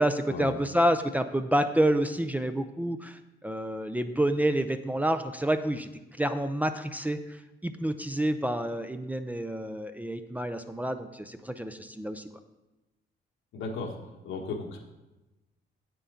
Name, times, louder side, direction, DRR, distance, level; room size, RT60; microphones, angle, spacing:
voice 1, 0.0-5.9 6.2-12.3, right 1 dB, 10° right, 9 dB, 0.5 m, -28 dB
voice 2, 13.5-14.0 14.2-14.8, left 3 dB, 80° left, 2 dB, 1.4 m, -35 dB
8.3 x 8.1 x 3.8 m, 1.0 s
cardioid pair, 90°, 20 cm